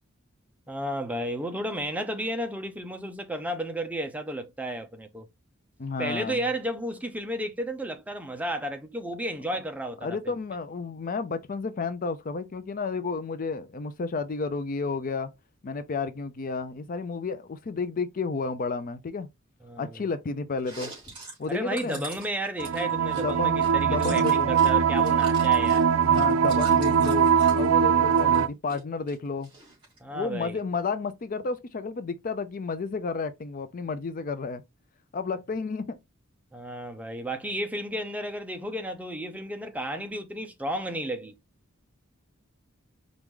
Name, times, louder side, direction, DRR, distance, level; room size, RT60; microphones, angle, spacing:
voice 1, 0.7-5.3 6.0-10.2 19.6-20.0 21.5-25.9 30.0-30.6 36.5-41.3, right 1 dB, 5° right, 0.6 m, -33 dB
voice 2, 5.8-6.4 10.0-15.3 15.6-19.3 19.8-20.9 21.4-22.0 23.1-24.5 26.0-27.3 27.5-29.5 30.1-34.6 35.1-36.0, left 4 dB, 45° left, 0.4 m, -31 dB
Chewing mastication, 20.6-24.7 25.0-27.7 28.1-28.8 29.1-30.0, right 2 dB, 25° right, 2.6 m, -43 dB
sound 1, 22.6-28.5, right 7 dB, 80° right, 0.4 m, -22 dB
4.6 x 2.5 x 3.6 m
head